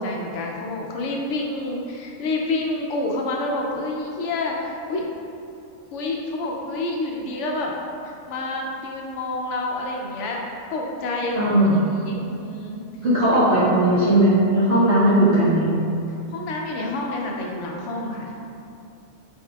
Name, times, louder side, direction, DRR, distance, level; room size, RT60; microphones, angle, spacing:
voice 1, 0.0-5.1 5.9-7.7 8.0-12.8 13.2-13.3 16.3-18.3, left 2 dB, 70° left, 0 dB, 0.8 m, -28 dB
voice 2, 11.3-11.8 13.0-15.7, right 1 dB, 50° right, -11 dB, 1.1 m, -17 dB
4.4 x 3.9 x 2.3 m, 2.6 s
omnidirectional pair, 1.4 m